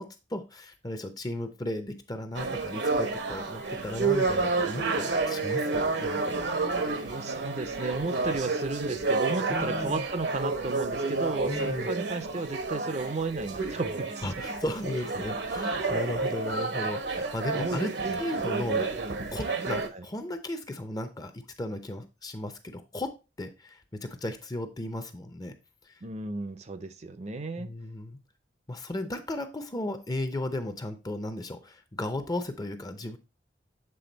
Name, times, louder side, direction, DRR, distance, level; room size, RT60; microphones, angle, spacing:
voice 1, 0.0-6.5 6.8-7.2 9.5-10.0 11.5-11.9 14.2-18.9 19.3-25.5 25.8-25.9 27.6-28.2 28.7-33.2, left 1 dB, 20° left, 0.6 m, -35 dB
sound 1, 2.3-19.9, right 3 dB, 65° right, 0.9 m, -30 dB
voice 2, 6.7-14.3 15.6-15.7 17.1-17.2 17.5-17.8 18.1-18.2 19.9-20.1 26.0-27.7, right 3 dB, 35° right, 0.5 m, -34 dB
7.7 x 3.7 x 3.9 m
head